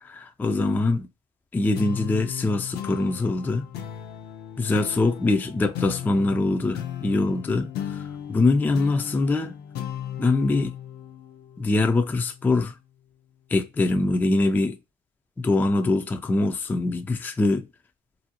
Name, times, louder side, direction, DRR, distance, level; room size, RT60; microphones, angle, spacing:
voice 1, 0.0-1.1 1.5-3.7 4.6-8.0 8.3-9.5 10.2-10.7 11.6-12.7 13.5-14.8 15.4-17.7, left 2 dB, 10° left, 0.3 m, -23 dB
sound 1, 1.7-12.6, left 10 dB, 60° left, 0.5 m, -36 dB
2.5 x 2.0 x 2.7 m
supercardioid pair, 90°, 19 cm